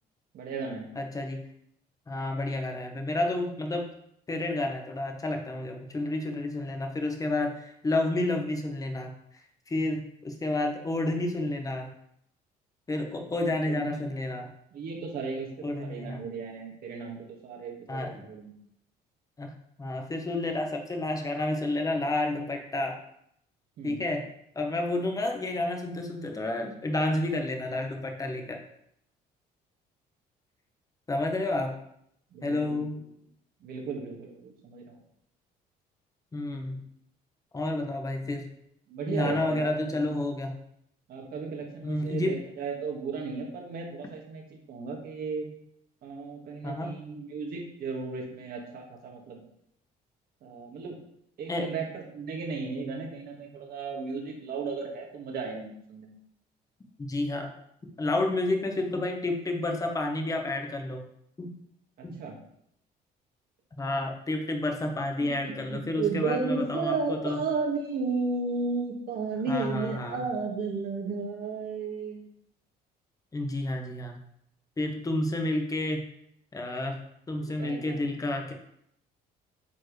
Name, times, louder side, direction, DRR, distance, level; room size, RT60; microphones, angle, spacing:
voice 1, 0.3-0.9 13.4-14.0 14.7-18.5 23.8-24.0 32.3-32.8 33.6-35.0 38.9-40.1 41.1-45.5 46.0-49.4 50.4-51.0 51.4-56.1 62.2-62.4 65.4-72.2 77.4-78.0, right 4 dB, 65° right, 0 dB, 1.9 m, -34 dB
voice 2, 0.9-1.4 2.1-3.9 4.3-9.1 9.7-11.9 12.9-14.5 15.6-16.2 17.9-18.2 19.4-19.5 19.8-23.0 23.8-24.3 24.5-28.6 31.1-31.7 32.4-33.0 36.3-36.8 37.5-38.5 39.1-40.5 41.8-42.4 46.6-46.9 51.5-51.7 57.0-57.5 58.0-61.0 61.4-61.6 62.0-62.2 63.8-67.4 69.5-70.2 73.3-74.2 74.8-76.0 76.5-77.0 77.3-78.5, left 2 dB, 20° left, 3 dB, 1.2 m, -30 dB
8.5 x 4.7 x 3.3 m, 0.73 s
cardioid pair, 110°, 17 cm